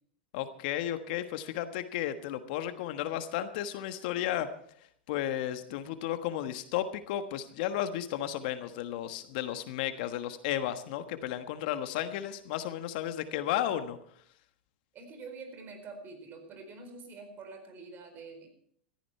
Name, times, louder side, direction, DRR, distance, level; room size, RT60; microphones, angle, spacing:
voice 1, 0.3-4.5 5.1-14.0, left 11 dB, 60° left, 9 dB, 1.3 m, -33 dB
voice 2, 14.9-18.5, right 4 dB, 35° right, 6 dB, 4.4 m, -46 dB
16.0 x 14.0 x 4.5 m, 0.63 s
hypercardioid pair, 100°, 6 cm